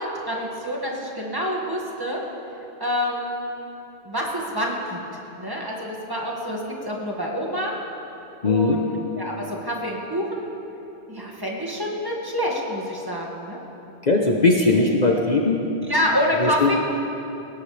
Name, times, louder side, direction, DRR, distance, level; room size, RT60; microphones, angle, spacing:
voice 1, 0.0-2.2 2.8-3.4 4.1-5.0 5.4-6.6 6.8-7.7 8.4-10.5 11.1-13.6 14.6-14.8 15.8-16.7, equal, 20° right, -3 dB, 2.1 m, -27 dB
voice 2, 8.4-8.8 14.0-15.6 16.4-16.7, left 3 dB, 45° left, 0 dB, 1.1 m, -19 dB
19.5 x 18.0 x 3.4 m, 2.9 s
omnidirectional pair, 1.1 m